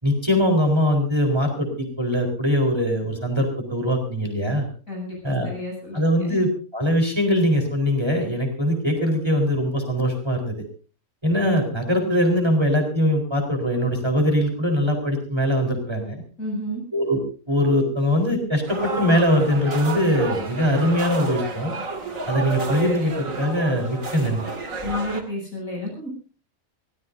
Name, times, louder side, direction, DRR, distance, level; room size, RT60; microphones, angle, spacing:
voice 1, 0.0-4.7 5.2-5.5 5.9-6.5 6.7-10.6 11.2-16.2 16.9-17.2 17.5-21.7 22.3-24.5, equal, 20° right, 3 dB, 4.2 m, -22 dB
voice 2, 4.9-6.4 16.4-16.8 24.8-26.1, left 1 dB, 70° left, 0 dB, 8.5 m, -31 dB
sound 1, 18.7-25.2, right 2 dB, 65° right, 2.8 m, -31 dB
24.0 x 18.0 x 2.7 m, 0.37 s
omnidirectional pair, 1.5 m